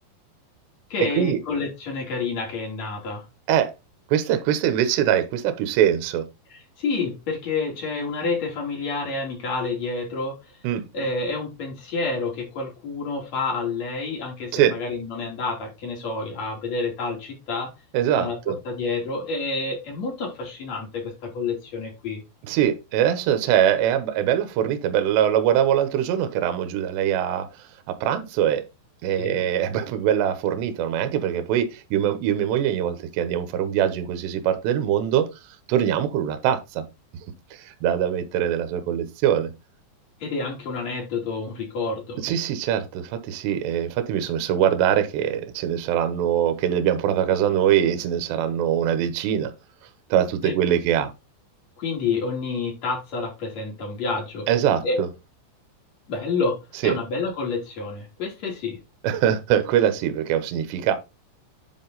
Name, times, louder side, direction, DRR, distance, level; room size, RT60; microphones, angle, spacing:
voice 1, 0.9-3.2 6.8-10.3 10.9-17.7 18.2-22.2 29.2-29.4 40.2-42.2 50.4-50.5 51.8-54.5 54.8-55.0 56.1-56.6 56.8-58.8, left 4 dB, 40° left, 3.7 m, -29 dB
voice 2, 4.1-6.2 10.6-10.8 14.5-14.7 17.9-18.6 22.5-27.5 27.9-28.6 29.0-35.3 35.7-36.8 37.5-39.5 42.2-49.5 50.1-51.1 54.5-55.1 56.8-57.0 59.0-61.0, right 10 dB, 70° right, 2.9 m, -22 dB
9.9 x 4.8 x 4.1 m
omnidirectional pair, 5.8 m